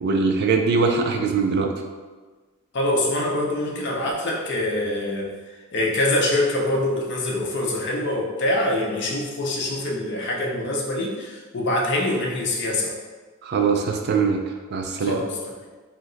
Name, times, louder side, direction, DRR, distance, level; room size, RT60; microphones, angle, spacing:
voice 1, 0.0-1.7 13.4-14.4 14.7-15.2, right 4 dB, 50° right, 3 dB, 0.3 m, -21 dB
voice 2, 2.7-13.0 15.0-15.5, left 1 dB, 55° left, -1 dB, 0.6 m, -25 dB
2.8 x 2.1 x 3.7 m, 1.3 s
head